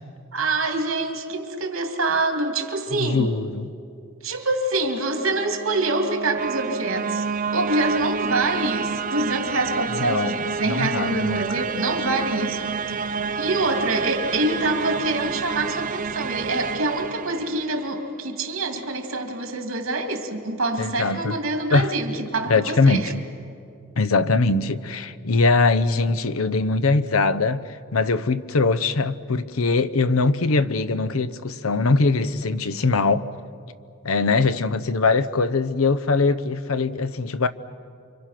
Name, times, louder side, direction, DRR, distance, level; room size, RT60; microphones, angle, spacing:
voice 1, 0.3-3.3 4.2-7.2 7.5-12.7 13.4-23.1, right 2 dB, 70° right, 2.8 m, -25 dB
voice 2, 3.0-3.7 10.0-10.4 10.7-11.6 20.8-21.4 21.7-21.9 22.5-23.2 24.0-33.3 34.0-37.5, left 3 dB, 90° left, 0.8 m, -22 dB
sound 1, 4.9-18.0, right 5 dB, 40° right, 0.6 m, -29 dB
29.0 x 25.0 x 6.0 m
head